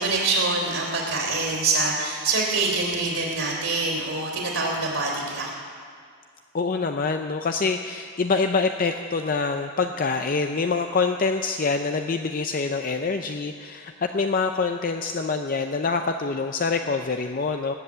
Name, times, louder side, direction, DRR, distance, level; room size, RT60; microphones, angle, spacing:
voice 1, 0.0-5.5, right 3 dB, 60° right, -2 dB, 3.5 m, -25 dB
voice 2, 6.5-17.7, left 4 dB, 40° left, 6 dB, 0.5 m, -25 dB
19.0 x 8.1 x 8.6 m, 2.1 s
head